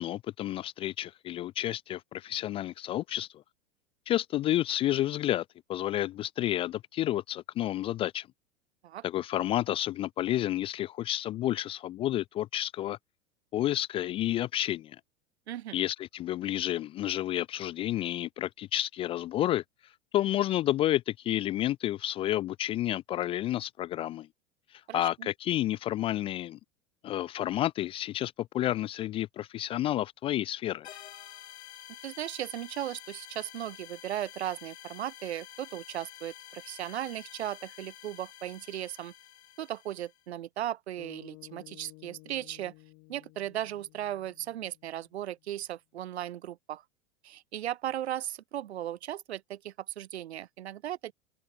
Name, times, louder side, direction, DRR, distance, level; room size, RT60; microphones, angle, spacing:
voice 1, 0.0-3.4 4.1-5.4 5.7-8.3 9.0-13.0 13.5-15.0 15.7-19.6 20.1-24.3 24.7-26.6 27.0-30.9, left 13 dB, 15° left, 0.3 m, -30 dB
voice 2, 15.5-15.8 24.9-25.3 32.0-39.1 39.6-42.7 43.1-46.8 47.2-51.1, right 12 dB, 65° right, 1.5 m, -37 dB
sound 1, 30.8-40.2, left 11 dB, 65° left, 2.4 m, -49 dB
sound 2, 41.0-45.4, left 31 dB, 45° left, 3.0 m, -54 dB
figure-of-eight pair, 90°, 36 cm